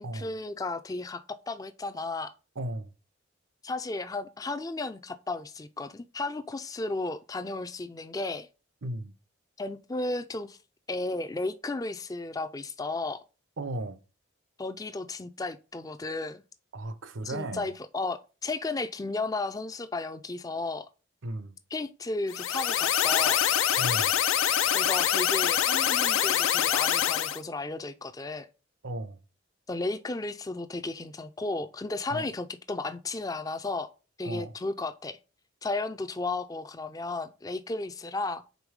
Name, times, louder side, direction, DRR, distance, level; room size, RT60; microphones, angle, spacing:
voice 1, 0.0-2.3 3.6-8.5 9.6-10.6 10.9-13.2 14.6-16.4 17.2-20.9 21.7-23.4 24.7-28.5 29.7-33.9 34.2-35.2 35.6-38.4, left 2 dB, 20° left, 0.4 m, -34 dB
voice 2, 2.6-2.9 8.8-9.1 13.6-14.0 16.7-17.7 21.2-21.6 23.8-24.2 28.8-29.2 32.1-32.3 34.2-34.5, right 1 dB, 75° right, 0.7 m, -35 dB
sound 1, 22.3-27.4, left 10 dB, 85° left, 0.5 m, -25 dB
5.2 x 3.9 x 4.7 m
head